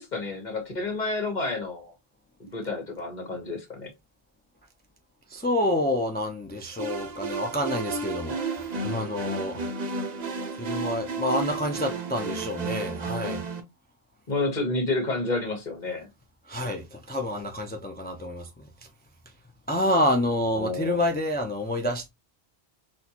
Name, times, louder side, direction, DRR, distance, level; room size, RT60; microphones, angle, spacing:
voice 1, 0.0-1.9 2.4-3.9 14.3-16.1 20.6-21.0, left 2 dB, 45° left, 1.2 m, -30 dB
voice 2, 5.3-9.7 10.6-13.4 16.5-18.6 19.7-22.1, left 1 dB, 15° left, 0.3 m, -28 dB
sound 1, 6.8-13.6, right 3 dB, 45° right, 0.7 m, -32 dB
4.1 x 2.3 x 2.8 m
omnidirectional pair, 1.1 m